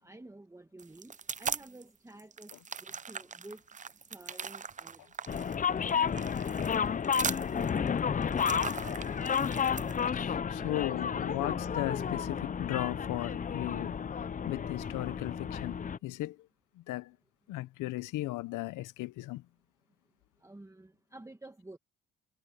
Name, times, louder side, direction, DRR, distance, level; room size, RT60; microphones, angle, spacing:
voice 1, 0.0-2.5 3.1-3.6 4.1-5.0 5.3-6.1 7.5-9.2 9.7-10.1 10.6-11.0 11.4-11.5 20.4-21.8, right 2 dB, 10° right, 1.4 m, -51 dB
sound 1, 0.8-1.8 2.2-10.0, right 6 dB, 25° right, 0.5 m, -40 dB
sound 2, 5.3-16.0, left 7 dB, 25° left, 0.5 m, -32 dB
voice 2, 10.5-14.2 14.5-16.4 16.8-17.2 17.5-19.4, left 17 dB, 85° left, 0.7 m, -36 dB
cardioid pair, 90°, 30 cm